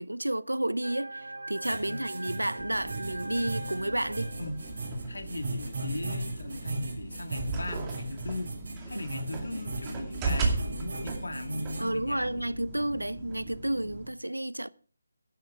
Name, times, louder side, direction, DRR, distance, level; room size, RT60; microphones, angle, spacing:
voice 1, 0.0-4.3 8.9-9.0 11.8-14.7, right 1 dB, 90° right, 0.7 m, -31 dB
sound 1, 0.8-5.3, right 2 dB, 70° right, 1.2 m, -42 dB
sound 2, 1.6-11.9, right 2 dB, 55° right, 5.5 m, -37 dB
sound 3, 2.6-14.1, right 3 dB, 15° right, 2.4 m, -37 dB
voice 2, 5.1-8.6 8.9-12.4, left 2 dB, 70° left, 1.9 m, -38 dB
12.0 x 10.5 x 4.8 m
figure-of-eight pair, 155°, 0 cm